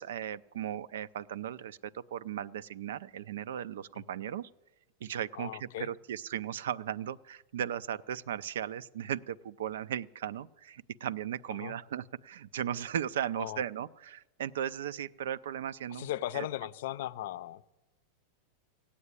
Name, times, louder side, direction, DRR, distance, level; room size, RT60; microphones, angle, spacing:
voice 1, 0.0-4.5 5.0-16.5, right 10 dB, 85° right, 16 dB, 0.4 m, -37 dB
voice 2, 5.3-5.9 11.6-11.8 13.4-13.6 15.9-17.6, left 14 dB, 70° left, 18 dB, 0.5 m, -37 dB
16.0 x 8.5 x 9.7 m, 1.1 s
supercardioid pair, 135°, 0 cm